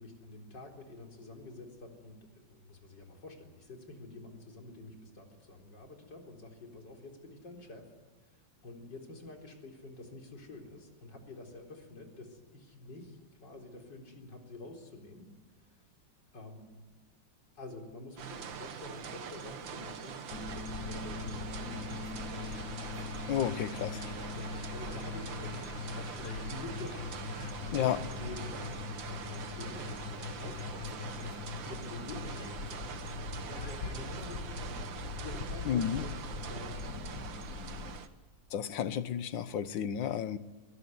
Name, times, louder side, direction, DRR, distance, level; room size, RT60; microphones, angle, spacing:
voice 1, 0.0-2.2 2.5-7.9 8.3-15.3 16.3-16.7 17.6-22.0 24.3-34.8 35.2-36.2 36.5-37.1, left 2 dB, 70° left, 2 dB, 4.7 m, -48 dB
sound 1, 18.2-38.1, right 7 dB, 85° right, 2.1 m, -44 dB
sound 2, 20.3-38.0, left 5 dB, 50° left, 1.7 m, -41 dB
voice 2, 23.3-24.0 27.7-28.0 35.7-36.0 38.5-40.4, left 9 dB, 85° left, 14 dB, 1.7 m, -32 dB
23.0 x 18.5 x 9.4 m, 1.3 s
omnidirectional pair, 2.0 m